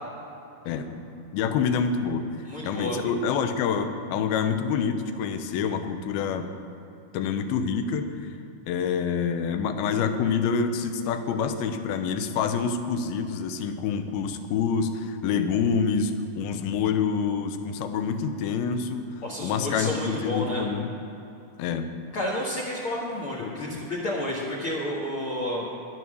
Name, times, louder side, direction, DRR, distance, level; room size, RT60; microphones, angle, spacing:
voice 1, 0.7-2.3 2.6-6.5 7.1-8.3 8.7-20.9 21.6-21.9 23.4-23.8, left 6 dB, 80° left, 8 dB, 2.5 m, -27 dB
voice 2, 2.5-3.0 19.2-20.6 22.1-25.6, left 1 dB, 60° left, -4 dB, 1.4 m, -30 dB
12.0 x 11.0 x 6.1 m, 2.8 s
omnidirectional pair, 4.5 m